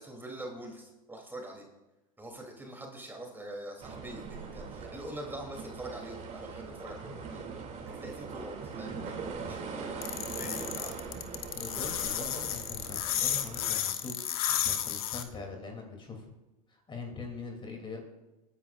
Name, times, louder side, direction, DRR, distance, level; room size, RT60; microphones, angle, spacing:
voice 1, 0.0-1.6 2.2-7.4 7.8-11.1, right 1 dB, 10° right, 1 dB, 3.2 m, -44 dB
sound 1, 3.8-13.7, right 5 dB, 40° right, 2.8 m, -41 dB
sound 2, 10.0-15.2, left 11 dB, 80° left, 1.3 m, -32 dB
voice 2, 11.5-14.1 14.4-16.3 16.7-18.0, left 4 dB, 25° left, 2 dB, 3.0 m, -42 dB
27.5 x 10.0 x 2.6 m, 1.0 s
hypercardioid pair, 100°, 18 cm